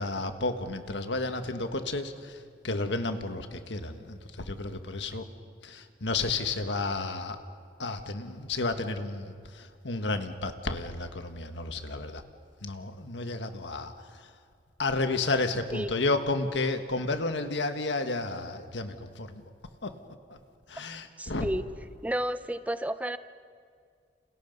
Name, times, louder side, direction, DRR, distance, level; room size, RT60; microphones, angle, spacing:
voice 1, 0.0-2.4 2.6-5.2 5.6-7.4 7.8-12.2 12.6-13.9 14.8-19.4 19.8-19.9 20.7-21.5, left 3 dB, 90° left, 7 dB, 1.6 m, -31 dB
voice 2, 21.2-21.7 22.0-23.2, right 1 dB, 10° right, 12 dB, 0.6 m, -31 dB
30.0 x 28.0 x 5.4 m, 2.2 s
head